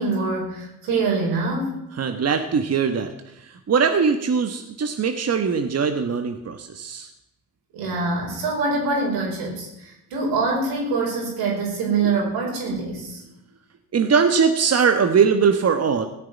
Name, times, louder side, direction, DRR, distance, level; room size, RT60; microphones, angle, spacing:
voice 1, 0.0-1.7 7.7-13.2, right 3 dB, 85° right, -1 dB, 5.2 m, -24 dB
voice 2, 2.0-3.1 3.5-7.1 13.9-16.1, right 6 dB, 45° right, 7 dB, 1.3 m, -21 dB
16.0 x 6.6 x 9.2 m, 0.86 s
supercardioid pair, 75°, 36 cm